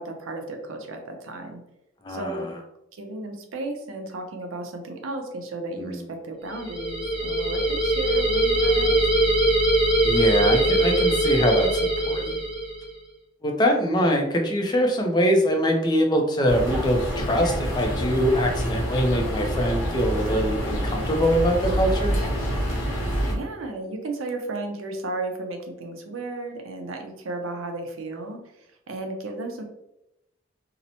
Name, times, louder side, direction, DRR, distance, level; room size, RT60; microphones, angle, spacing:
voice 1, 0.0-1.6 2.1-2.5 2.9-9.3 23.3-28.4 28.9-29.6, right 2 dB, 90° right, 4 dB, 0.5 m, -34 dB
voice 2, 2.0-2.5 5.8-6.0 10.0-12.4 13.4-22.2, equal, 20° left, 3 dB, 0.3 m, -23 dB
sound 1, 6.5-12.9, right 1 dB, 30° right, 0.9 m, -22 dB
sound 2, 16.5-23.3, equal, 85° left, 0.8 m, -27 dB
2.8 x 2.0 x 2.6 m, 0.86 s
head